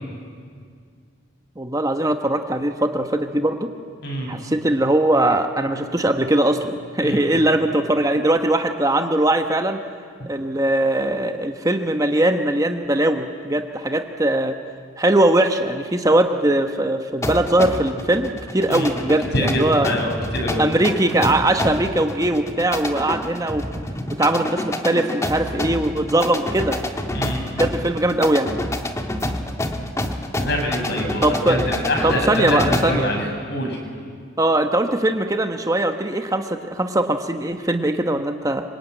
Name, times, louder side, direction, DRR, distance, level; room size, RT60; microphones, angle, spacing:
voice 1, 1.6-3.7 4.3-9.8 10.3-14.5 15.0-19.9 20.6-23.7 24.2-26.8 27.6-28.5 31.2-31.6 32.0-33.1 34.4-38.6, right 1 dB, 20° right, 6 dB, 1.1 m, -20 dB
voice 2, 4.0-4.4 7.0-7.3 18.7-18.9 19.3-20.6 27.1-27.5 30.4-33.8, equal, 60° left, 2 dB, 6.1 m, -25 dB
sound 1, 17.2-33.1, left 1 dB, 15° left, 1.4 m, -28 dB
26.0 x 25.0 x 9.1 m, 2.1 s
head